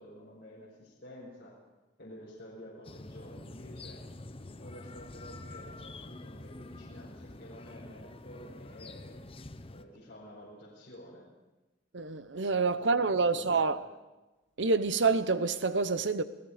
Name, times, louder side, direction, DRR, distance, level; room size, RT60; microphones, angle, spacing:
voice 1, 0.0-1.6 2.0-4.0 4.6-9.2 9.7-11.2 12.4-13.7, equal, 55° left, 5.7 m, -50 dB
sound 1, 2.8-9.8, left 2 dB, 30° left, 0.8 m, -47 dB
voice 2, 11.9-13.8 14.6-16.2, right 4 dB, 75° right, 1.0 m, -27 dB
28.5 x 18.0 x 5.1 m
head